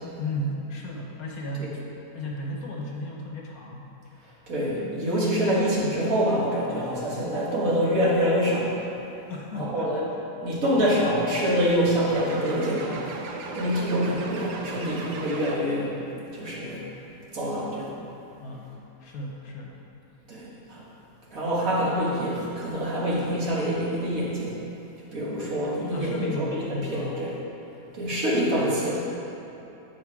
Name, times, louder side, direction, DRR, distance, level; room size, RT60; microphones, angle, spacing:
voice 1, 0.2-1.8 2.1-3.9 9.3-10.2 18.4-18.7 19.0-19.8 25.8-27.1, left 1 dB, 65° left, -1 dB, 1.3 m, -34 dB
voice 2, 4.5-8.8 9.5-10.0 10.4-13.1 13.5-16.1 16.3-16.8 17.3-17.9 20.3-20.8 21.3-24.6 25.0-27.3 27.9-28.9, equal, 55° right, -6 dB, 1.9 m, -26 dB
sound 1, 12.1-15.9, right 4 dB, 80° right, 1.3 m, -38 dB
9.3 x 4.8 x 4.7 m, 3.0 s
omnidirectional pair, 1.8 m